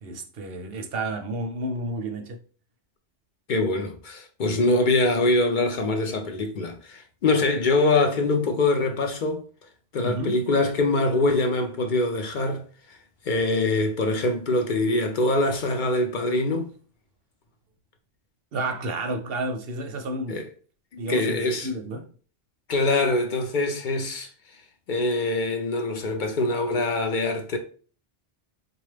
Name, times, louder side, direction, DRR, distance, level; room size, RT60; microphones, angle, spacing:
voice 1, 0.0-2.4 10.0-10.4 18.5-20.4 21.0-22.1, right 1 dB, 65° right, 0.7 m, -31 dB
voice 2, 3.5-9.4 9.9-12.6 12.9-13.0 13.3-16.7 20.3-20.4 20.9-21.7 22.7-24.3 24.9-27.6, left 2 dB, 60° left, 0.5 m, -24 dB
4.0 x 2.3 x 3.2 m
omnidirectional pair, 1.2 m